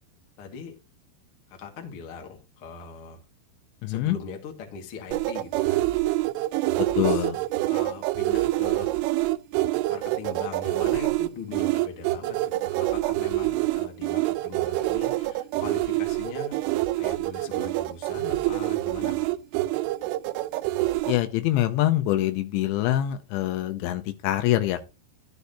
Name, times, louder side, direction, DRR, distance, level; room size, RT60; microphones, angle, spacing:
voice 1, 0.4-0.7 1.6-3.2 3.9-5.9 6.9-7.2 7.7-8.9 9.9-12.4 12.6-16.6 17.0-19.4, left 5 dB, 60° left, 1.5 m, -40 dB
voice 2, 3.8-4.2 6.8-7.4 21.1-24.9, left 14 dB, 80° left, 2.9 m, -25 dB
sound 1, 5.1-21.2, right 17 dB, 85° right, 3.1 m, -26 dB
13.0 x 8.0 x 2.7 m
omnidirectional pair, 5.5 m